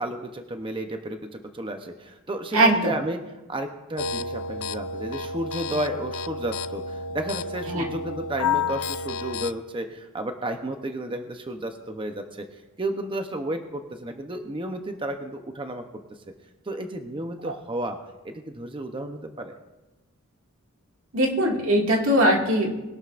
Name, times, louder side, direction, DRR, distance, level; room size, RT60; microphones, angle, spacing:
voice 1, 0.0-3.2 3.5-12.5 12.8-15.8 16.6-18.0 18.2-19.5, right 1 dB, 25° right, 5 dB, 0.8 m, -32 dB
voice 2, 2.5-2.9 7.7-7.8 21.1-22.8, right 1 dB, 90° right, 0 dB, 2.2 m, -20 dB
sound 1, 4.0-9.5, left 4 dB, 90° left, 0.5 m, -31 dB
21.5 x 11.5 x 2.5 m, 1.1 s
head